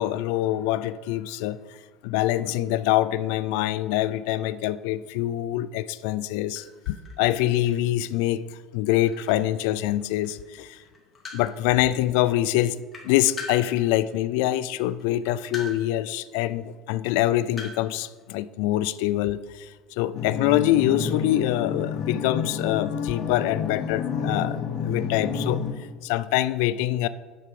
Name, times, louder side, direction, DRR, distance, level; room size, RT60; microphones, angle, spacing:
voice 1, 0.0-1.6 2.0-8.4 8.7-10.8 11.3-12.8 13.0-25.6 26.0-27.1, left 14 dB, 90° left, 15 dB, 0.3 m, -25 dB
sound 1, 6.2-6.3 6.5-10.5 10.8-11.7 12.3-12.4 12.6-14.4 15.0-16.0 16.3-16.4 17.0-18.2, left 3 dB, 20° left, 1.8 m, -41 dB
sound 2, 20.1-25.7, left 6 dB, 45° left, 0.9 m, -29 dB
8.6 x 5.9 x 4.7 m, 1.4 s
cardioid pair, 145°, 0 cm